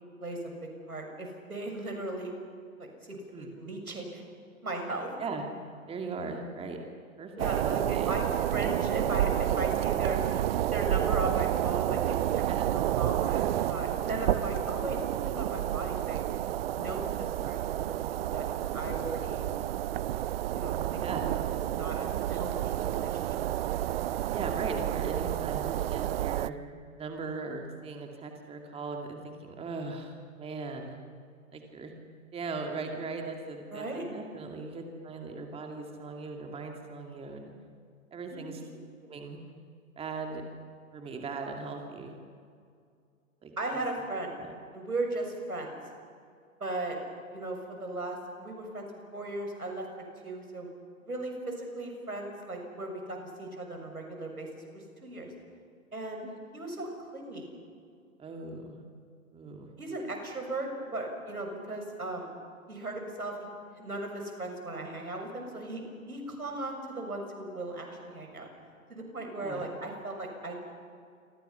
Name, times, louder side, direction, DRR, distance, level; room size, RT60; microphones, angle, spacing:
voice 1, 0.9-2.3 2.8-4.2 4.6-5.1 7.4-12.4 12.7-16.2 16.7-18.5 18.7-19.4 20.5-21.0 21.3-23.5 33.7-34.0 38.3-38.8 43.6-44.3 44.7-45.7 46.6-47.0 47.3-48.9 49.1-49.9 50.2-50.7 51.0-55.3 55.9-56.2 56.5-57.5 59.8-62.3 62.7-63.5 63.7-68.5 68.9-70.7, right 2 dB, 90° right, 3 dB, 6.7 m, -37 dB
voice 2, 5.9-6.8 7.2-8.1 12.5-12.7 21.0-21.3 24.3-26.6 27.0-31.0 31.5-31.9 32.3-37.5 38.1-38.6 39.0-39.4 40.0-40.4 40.9-42.1 43.4-43.5 44.4-44.5 56.2-56.3 58.2-58.8 59.3-59.7 69.4-69.7, right 4 dB, 15° right, 3 dB, 2.5 m, -39 dB
sound 1, 7.4-26.5, right 12 dB, 45° right, 0.7 m, -30 dB
27.5 x 25.5 x 5.8 m, 2.3 s
figure-of-eight pair, 120°, 43 cm